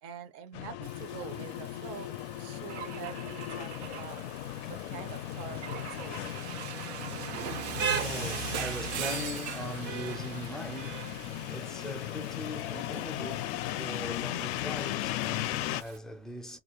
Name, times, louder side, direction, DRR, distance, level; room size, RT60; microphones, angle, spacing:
voice 1, 0.0-4.2 4.7-6.2, right 9 dB, 45° right, 0.7 m, -45 dB
sound 1, 0.5-15.8, left 15 dB, 65° left, 0.5 m, -37 dB
Rain, 0.8-16.0, right 7 dB, 70° right, 1.0 m, -41 dB
Car / Engine / Glass, 2.7-4.9 5.6-9.8, right 9 dB, 90° right, 0.7 m, -42 dB
voice 2, 7.4-16.6, left 1 dB, ahead, 0.5 m, -41 dB
3.0 x 2.5 x 2.8 m
supercardioid pair, 125°, 34 cm